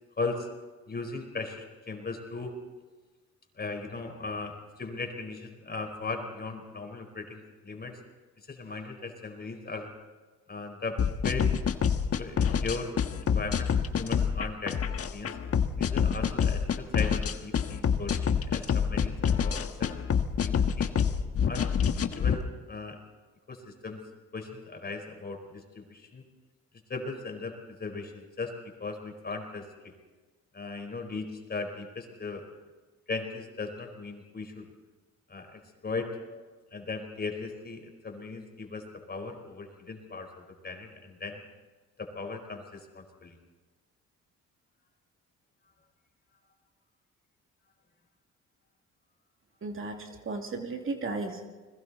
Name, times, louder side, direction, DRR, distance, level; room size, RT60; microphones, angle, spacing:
voice 1, 0.2-0.5 0.9-2.6 3.6-8.0 8.5-9.9 10.5-11.5 12.2-12.9 13.2-15.4 15.8-19.9 20.4-20.9 21.5-23.0 23.5-24.0 24.3-26.2 26.9-27.5 27.8-28.5 28.8-29.9 30.5-32.5 33.1-34.7 35.3-36.4 36.7-41.4 42.0-43.4, left 3 dB, 30° left, 4 dB, 4.6 m, -38 dB
sound 1, 11.0-22.4, left 7 dB, 50° left, 1.4 m, -27 dB
voice 2, 49.6-51.5, right 3 dB, 45° right, 3 dB, 2.6 m, -35 dB
30.0 x 21.5 x 4.2 m, 1.3 s
cardioid pair, 90°, 30 cm